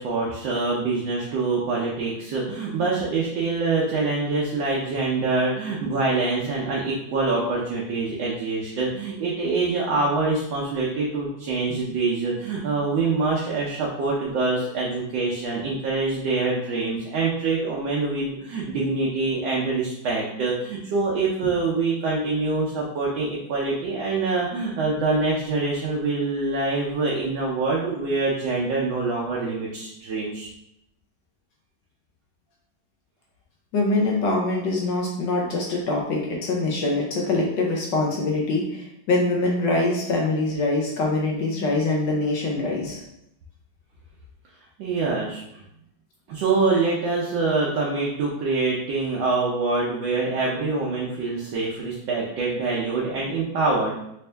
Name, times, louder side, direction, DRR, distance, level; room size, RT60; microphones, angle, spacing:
voice 1, 0.0-30.5 44.8-45.6 46.3-54.0, right 3 dB, 70° right, -4 dB, 1.4 m, -25 dB
voice 2, 33.7-43.0, left 2 dB, 70° left, -2 dB, 1.3 m, -24 dB
4.2 x 2.7 x 3.3 m, 0.79 s
omnidirectional pair, 2.2 m